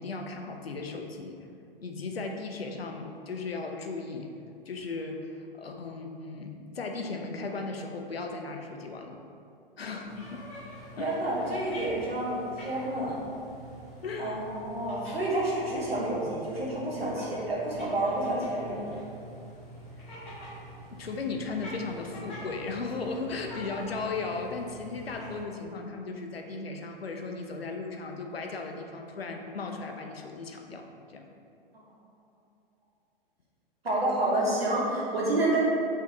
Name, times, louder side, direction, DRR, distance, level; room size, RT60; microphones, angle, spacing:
voice 1, 0.0-1.4 1.8-4.3 4.7-9.2 9.8-10.4 11.0-11.1 14.0-14.4 20.9-30.9 31.1-31.3, left 3 dB, 80° left, 3 dB, 0.5 m, -36 dB
sound 1, 10.0-25.4, equal, 20° left, 1.3 m, -45 dB
voice 2, 11.0-13.2 14.2-18.9 31.7-31.8 33.8-35.6, right 1 dB, 80° right, -5 dB, 1.0 m, -29 dB
3.6 x 3.4 x 2.8 m, 2.5 s
figure-of-eight pair, 105°, 29 cm